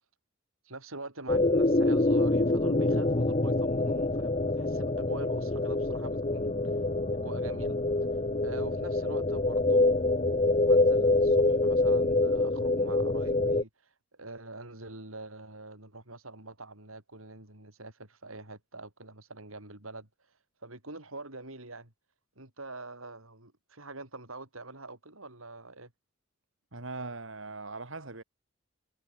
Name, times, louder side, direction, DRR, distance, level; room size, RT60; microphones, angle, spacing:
voice 1, 0.6-6.6 7.1-7.8 8.4-20.1 20.6-21.9 22.4-25.9, right 2 dB, 85° right, 7.8 m, -45 dB
sound 1, 1.3-13.6, left 2 dB, 30° left, 1.1 m, -26 dB
voice 2, 26.7-28.2, right 3 dB, 65° right, 2.8 m, -40 dB
head